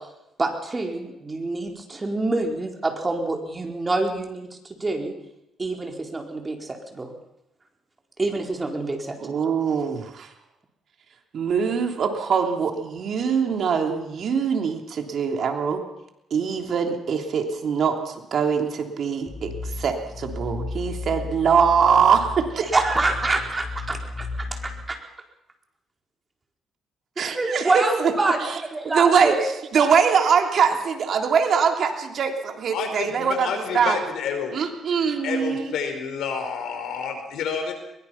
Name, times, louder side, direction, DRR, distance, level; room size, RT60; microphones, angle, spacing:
voice 1, 0.4-5.1 5.6-7.1 8.2-9.3 22.6-25.0 27.2-28.4 28.7-29.5, right 2 dB, 25° right, 2 dB, 4.4 m, -26 dB
voice 2, 9.2-10.3 11.3-15.8 16.3-22.7 27.2-28.1 28.4-28.5 28.8-29.3 29.7-34.0 34.5-35.8, right 6 dB, 60° right, 4 dB, 3.1 m, -23 dB
sound 1, 19.3-24.8, left 3 dB, 20° left, 7.8 m, -34 dB
voice 3, 32.7-34.6 35.2-37.7, left 6 dB, 80° left, 5 dB, 4.9 m, -29 dB
22.0 x 22.0 x 5.8 m, 0.87 s
cardioid pair, 90°, 0 cm